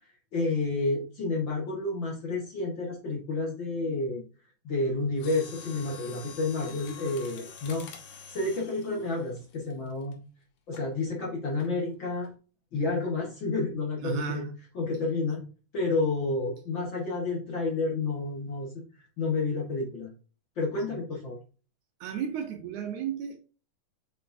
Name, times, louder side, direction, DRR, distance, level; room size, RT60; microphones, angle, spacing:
voice 1, 0.3-4.2 4.6-7.8 8.3-10.2 10.7-12.3 12.7-14.5 14.8-15.4 15.7-18.8 19.2-20.1 20.6-21.4, left 3 dB, 45° left, 1.9 m, -30 dB
Mechanisms, 5.1-10.1 10.7-10.9 11.6-11.9 12.2-12.3, left 7 dB, 75° left, 2.8 m, -47 dB
voice 2, 14.0-14.5 20.9-21.0 22.0-23.4, right 6 dB, 70° right, 2.0 m, -33 dB
8.1 x 4.4 x 2.7 m
omnidirectional pair, 3.9 m